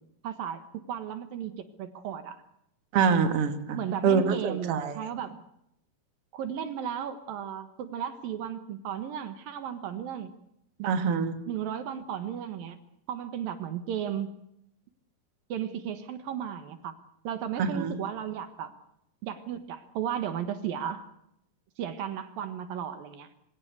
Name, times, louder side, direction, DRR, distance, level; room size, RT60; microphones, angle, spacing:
voice 1, 0.2-2.4 3.8-5.4 6.3-10.3 10.8-11.0 11.5-12.8 13.1-14.3 15.5-16.9 17.2-18.7 19.2-21.1 21.8-23.3, right 9 dB, 75° right, 10 dB, 3.1 m, -35 dB
voice 2, 2.9-5.0 10.9-11.4 17.6-18.0, right 6 dB, 45° right, 8 dB, 2.7 m, -25 dB
25.0 x 17.0 x 8.0 m, 0.78 s
omnidirectional pair, 4.3 m